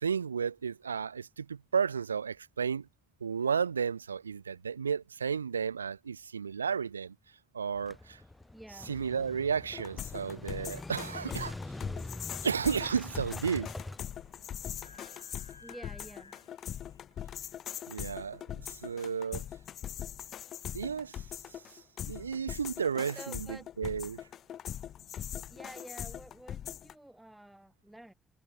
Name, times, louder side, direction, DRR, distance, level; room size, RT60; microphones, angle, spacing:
voice 1, 0.0-2.9 3.2-7.1 7.5-8.2 8.9-11.6 12.4-13.7 17.9-19.4 20.7-21.2 22.1-24.2, right 6 dB, 85° right, 0.5 m, -33 dB
Motorcycle / Engine starting, 7.8-15.0, left 2 dB, 15° left, 1.5 m, -44 dB
voice 2, 8.5-8.9 15.6-16.3 23.1-23.7 25.5-28.1, right 1 dB, 10° right, 2.4 m, -49 dB
sound 1, 9.7-26.9, left 10 dB, 55° left, 1.4 m, -42 dB
sound 2, 12.0-17.0, left 4 dB, 85° left, 5.3 m, -58 dB
figure-of-eight pair, 40°, 0 cm